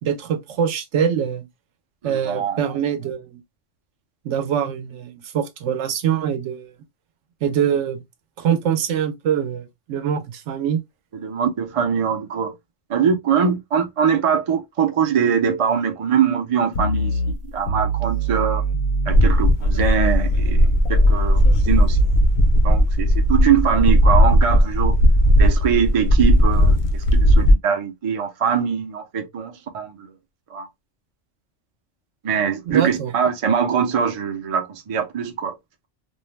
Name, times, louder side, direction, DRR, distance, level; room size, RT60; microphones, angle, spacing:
voice 1, 0.0-1.5 2.0-3.4 4.2-6.7 7.4-8.0 8.4-10.8 32.7-33.1, right 8 dB, 80° right, 0.9 m, -24 dB
voice 2, 2.0-2.7 11.1-12.5 12.9-17.2 17.5-18.6 19.1-22.0 22.6-25.0 25.4-30.1 30.5-30.7 32.2-35.5, right 7 dB, 45° right, 0.4 m, -22 dB
sound 1, 16.7-19.5 19.8-22.2, equal, 85° left, 0.9 m, -23 dB
sound 2, 19.1-27.5, equal, 50° left, 0.6 m, -16 dB
2.5 x 2.0 x 3.0 m
omnidirectional pair, 1.2 m